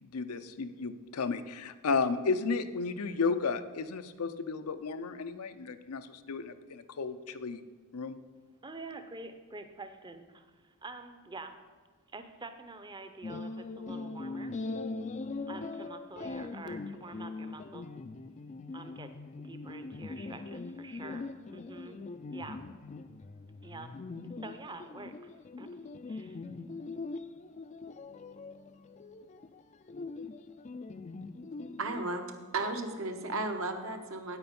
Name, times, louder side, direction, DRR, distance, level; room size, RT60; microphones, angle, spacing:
voice 1, 0.0-7.6 7.9-8.1, left 4 dB, 85° left, 10 dB, 0.6 m, -33 dB
voice 2, 8.6-11.6 12.1-14.6 15.5-17.9 18.7-19.1 19.4-22.0 22.3-22.6 23.6-23.9 24.4-25.3 25.6-25.8 26.1-26.4, right 3 dB, 20° right, 9 dB, 0.6 m, -47 dB
sound 1, 13.2-32.0, left 3 dB, 30° left, 0.3 m, -42 dB
voice 3, 31.8-32.3 32.5-34.4, right 2 dB, 65° right, 5 dB, 1.0 m, -34 dB
8.9 x 8.7 x 5.3 m, 1.5 s
head